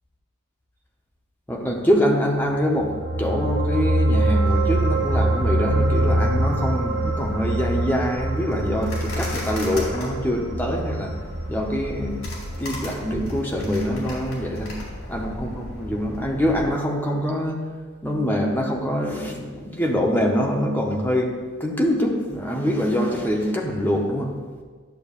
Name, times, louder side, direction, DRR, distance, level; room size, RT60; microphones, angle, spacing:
voice 1, 1.5-11.1 11.5-12.3 12.6-14.7 15.1-17.7 18.0-21.3 21.6-24.3, equal, 10° left, 0 dB, 0.7 m, -24 dB
sound 1, 2.7-13.4 13.7-13.8, right 1 dB, 70° right, 0.8 m, -24 dB
sound 2, 4.3-16.7, left 1 dB, 70° left, 2.1 m, -35 dB
10.5 x 6.7 x 2.4 m, 1.5 s
head